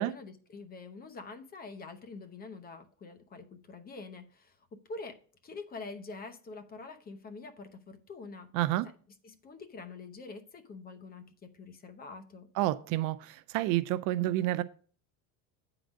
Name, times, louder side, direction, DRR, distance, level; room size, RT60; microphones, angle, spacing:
voice 1, 0.0-8.5 9.2-12.5, left 3 dB, 25° left, 0.8 m, -46 dB
voice 2, 8.5-8.9 12.6-14.6, right 15 dB, 55° right, 0.5 m, -29 dB
9.0 x 3.9 x 6.2 m
cardioid pair, 145°, 39 cm